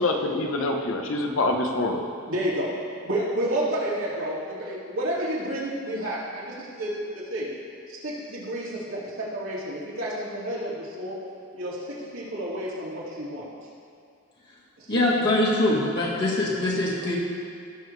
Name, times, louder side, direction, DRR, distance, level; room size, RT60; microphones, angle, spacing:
voice 1, 0.0-2.0, left 2 dB, 80° left, 3 dB, 1.0 m, -25 dB
voice 2, 2.3-2.8 3.0-7.5 7.9-11.2 11.5-13.5 14.8-14.9, right 1 dB, 90° right, -7 dB, 2.8 m, -30 dB
voice 3, 14.9-17.1, left 1 dB, 55° left, -6 dB, 1.9 m, -23 dB
17.5 x 6.7 x 3.4 m, 2.4 s
head